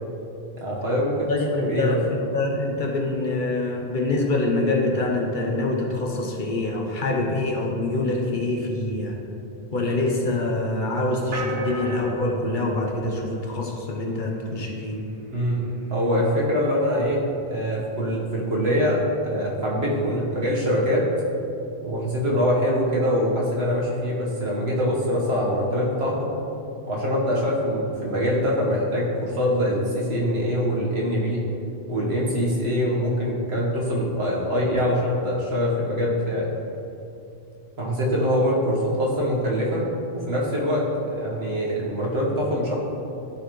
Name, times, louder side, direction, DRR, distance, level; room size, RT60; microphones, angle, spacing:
voice 1, 0.6-1.3 1.5-2.0 15.3-15.6 15.9-21.0 21.8-26.3 26.9-31.4 31.9-36.5 37.8-39.8 40.1-42.8, equal, 85° right, -5 dB, 1.7 m, -24 dB
voice 2, 1.3-9.2 9.7-15.0, left 2 dB, 55° left, 0 dB, 1.0 m, -25 dB
sound 1, 11.3-13.9, right 1 dB, 60° right, 0.9 m, -34 dB
12.5 x 4.2 x 3.2 m, 2.8 s
omnidirectional pair, 1.0 m